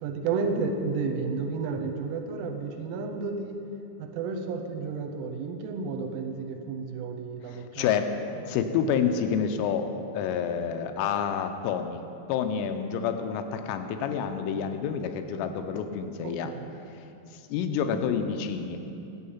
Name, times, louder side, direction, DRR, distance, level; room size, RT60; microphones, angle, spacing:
voice 1, 0.0-3.6 4.0-8.0 16.2-16.7, right 4 dB, 85° right, 4 dB, 3.1 m, -32 dB
voice 2, 7.5-8.0 8.4-9.8 10.1-12.0 12.3-16.5 17.5-18.8, left 7 dB, 85° left, 7 dB, 3.2 m, -28 dB
12.0 x 8.4 x 5.6 m, 2.7 s
omnidirectional pair, 5.8 m